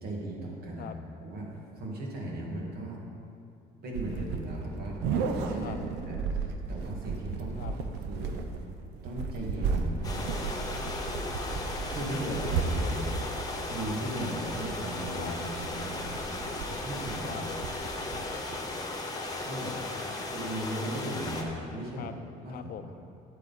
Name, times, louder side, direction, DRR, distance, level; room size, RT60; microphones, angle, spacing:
voice 1, 0.0-3.0 3.8-7.8 8.1-8.4 9.0-10.2 11.9-13.2 13.7-16.0 16.7-17.4 19.4-19.7 20.3-22.2 22.4-22.7, right 1 dB, 65° right, -2 dB, 2.1 m, -37 dB
sound 1, 3.9-18.7, right 4 dB, 80° right, 0.8 m, -34 dB
sound 2, 10.0-21.4, left 2 dB, 20° left, 1.2 m, -36 dB
voice 2, 10.8-11.5 12.1-13.2 15.2-15.4 17.2-17.4 19.6-20.3 22.0-22.1 22.5-22.9, left 8 dB, 60° left, 9 dB, 0.6 m, -43 dB
9.5 x 8.3 x 4.2 m, 2.5 s
cardioid pair, 110°, 17 cm